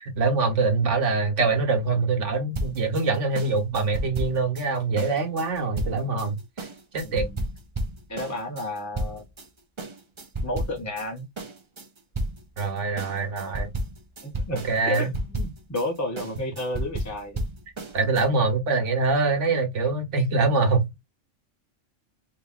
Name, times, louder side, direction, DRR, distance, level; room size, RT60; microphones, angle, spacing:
voice 1, 0.0-6.4 6.9-7.3 12.6-13.7 14.5-15.1 17.9-20.8, right 3 dB, 70° right, 1.6 m, -24 dB
sound 1, 2.5-9.5 9.8-11.1 11.4-18.3, right 1 dB, 30° right, 0.6 m, -33 dB
voice 2, 7.0-7.4 8.1-9.2 10.4-11.3 14.2-17.4, left 1 dB, 15° left, 0.8 m, -32 dB
5.1 x 2.9 x 2.4 m
omnidirectional pair, 1.3 m